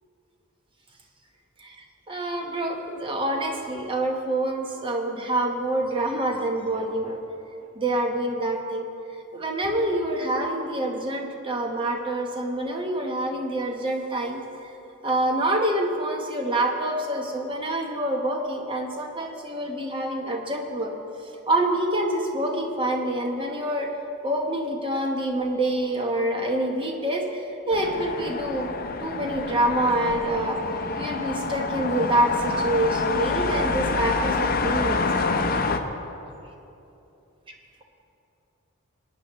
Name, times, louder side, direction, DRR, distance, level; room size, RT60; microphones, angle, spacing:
voice 1, 2.1-7.2 7.7-8.9 9.3-14.7 15.0-20.9 21.5-23.9 24.2-28.7 29.0-30.6 31.0-35.3, right 1 dB, 20° right, 2 dB, 1.1 m, -26 dB
sound 1, 27.7-35.8, left 4 dB, 40° left, 0.6 m, -27 dB
20.0 x 9.7 x 3.1 m, 2.8 s
head